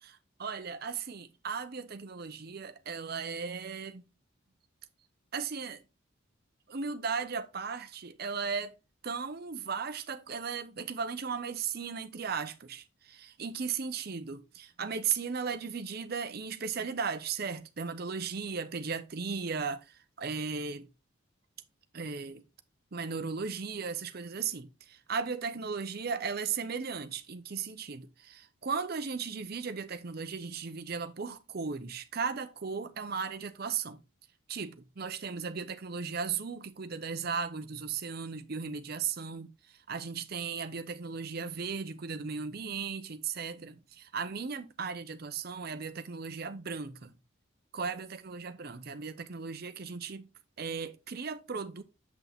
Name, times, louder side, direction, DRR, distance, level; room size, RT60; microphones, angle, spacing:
voice 1, 0.0-4.0 5.3-5.8 6.7-8.7 9.0-20.9 21.9-22.4 22.9-34.0 34.5-39.5 39.9-47.1 47.7-50.3 50.6-51.8, right 5 dB, 50° right, 0.6 m, -36 dB
7.3 x 5.9 x 3.5 m
head